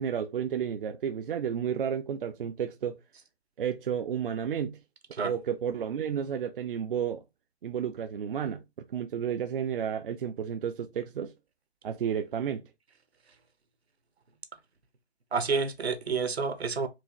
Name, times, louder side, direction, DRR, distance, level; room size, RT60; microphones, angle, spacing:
voice 1, 0.0-3.0 3.6-4.8 5.2-7.2 7.6-11.3 11.8-12.6, right 8 dB, 55° right, 0.5 m, -32 dB
voice 2, 15.3-16.9, right 4 dB, 75° right, 0.9 m, -29 dB
4.4 x 2.6 x 3.0 m
figure-of-eight pair, 130°, 32 cm